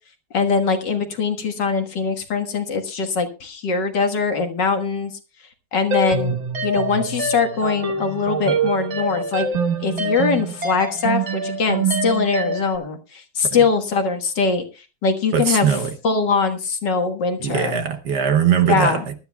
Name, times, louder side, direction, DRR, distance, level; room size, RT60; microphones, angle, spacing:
voice 1, 0.3-5.1 5.7-9.5 9.8-14.6 15.0-15.7 16.0-17.8 18.7-19.0, left 4 dB, 60° left, 2.1 m, -22 dB
sound 1, 5.9-12.8, right 4 dB, 35° right, 1.5 m, -25 dB
voice 2, 15.3-16.0 17.4-19.1, right 8 dB, 60° right, 1.4 m, -20 dB
22.0 x 12.5 x 2.3 m
omnidirectional pair, 2.2 m